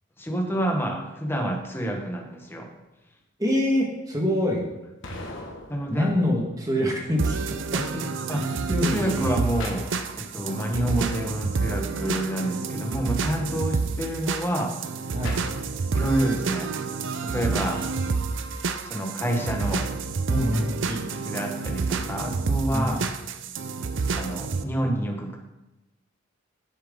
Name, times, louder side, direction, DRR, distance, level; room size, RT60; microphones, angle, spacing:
voice 1, 0.2-2.7 5.7-6.1 8.3-8.4 8.8-9.9 10.2-14.7 15.9-16.7 17.2-17.8 18.8-19.9 20.9-23.0 24.1-25.4, right 1 dB, 10° left, 1 dB, 1.2 m, -28 dB
voice 2, 3.4-4.6 5.9-7.4 7.7-8.0 8.3-8.4 8.7-9.2 15.1-15.4 20.3-20.7 22.7-22.9, left 1 dB, 20° right, 0 dB, 1.5 m, -25 dB
sound 1, 5.0-6.9 9.6-11.1 15.2-16.6 17.8-18.9 20.4-20.5, left 2 dB, 70° left, 1.5 m, -42 dB
sound 2, 7.2-24.6, right 4 dB, 65° right, 0.6 m, -29 dB
9.8 x 7.5 x 3.7 m, 1.0 s
head